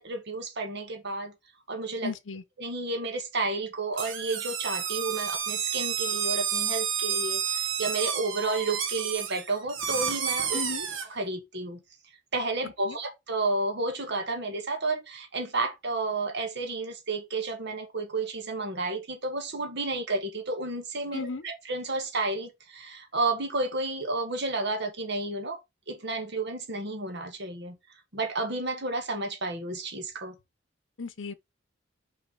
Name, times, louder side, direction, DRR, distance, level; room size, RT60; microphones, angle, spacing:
voice 1, 0.0-1.3 1.7-2.1 2.6-10.6 11.1-11.8 12.3-25.6 25.9-27.8 28.1-30.4, right 3 dB, 60° right, 1.9 m, -31 dB
voice 2, 2.0-2.4 10.5-10.9 12.8-13.0 21.1-21.4 31.0-31.3, left 4 dB, 75° left, 0.7 m, -35 dB
sound 1, 4.0-11.1, right 8 dB, 90° right, 1.4 m, -30 dB
5.8 x 4.9 x 4.6 m
head